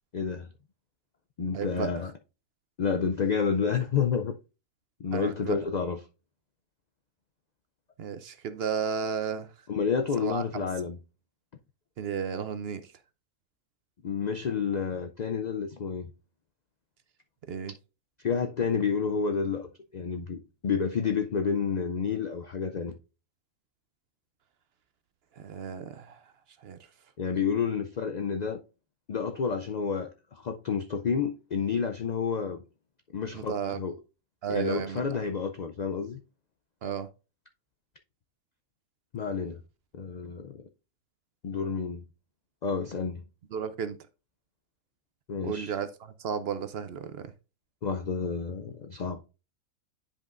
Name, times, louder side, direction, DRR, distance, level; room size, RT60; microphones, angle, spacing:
voice 1, 0.1-0.5 1.4-2.1 2.8-4.4 5.0-6.0 9.7-11.0 14.0-16.1 18.2-23.0 27.2-28.6 29.1-32.6 33.1-34.0 34.5-36.2 39.1-39.6 39.9-40.6 41.4-42.0 42.6-43.2 45.3-45.7 47.8-49.2, left 6 dB, 85° left, 0.3 m, -30 dB
voice 2, 1.5-1.9 5.1-5.6 8.0-9.5 10.2-10.6 12.0-12.8 17.5-17.7 25.4-26.2 26.6-26.8 33.3-33.8 34.4-35.0 36.8-37.1 43.5-44.0 45.4-45.9 46.2-47.3, right 7 dB, 60° right, 0.7 m, -33 dB
9.9 x 5.3 x 2.4 m
omnidirectional pair, 1.4 m